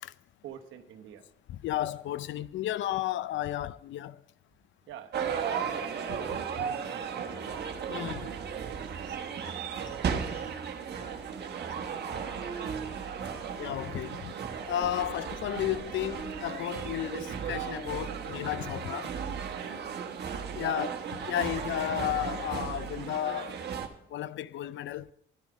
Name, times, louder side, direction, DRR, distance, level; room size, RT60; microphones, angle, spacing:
voice 1, 0.4-1.2 4.9-8.4 8.7-10.1 10.7-11.7 20.5-20.9, right 11 dB, 85° right, 1.1 m, -45 dB
voice 2, 1.5-4.2 7.9-8.3 13.6-14.3 14.7-19.1 20.6-20.9 21.3-23.6 24.1-25.1, left 12 dB, 70° left, 0.5 m, -33 dB
sound 1, 5.1-23.9, right 7 dB, 55° right, 1.3 m, -35 dB
10.5 x 10.5 x 5.0 m
cardioid pair, 90°, 20 cm